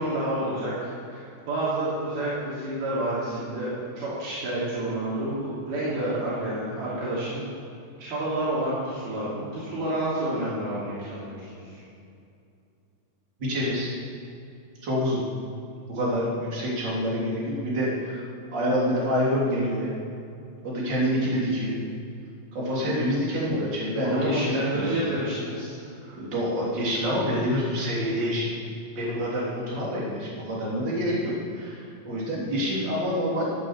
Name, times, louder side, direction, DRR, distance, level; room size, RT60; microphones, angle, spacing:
voice 1, 0.0-7.4 8.0-11.8 24.0-26.2, right 1 dB, 80° right, -9 dB, 5.0 m, -29 dB
voice 2, 13.4-13.9 14.8-15.2 15.9-18.3 18.5-19.9 20.6-21.7 22.5-25.0 26.2-28.6 28.9-33.5, equal, 30° right, -6 dB, 3.8 m, -27 dB
15.0 x 8.7 x 7.5 m, 2.6 s
omnidirectional pair, 4.4 m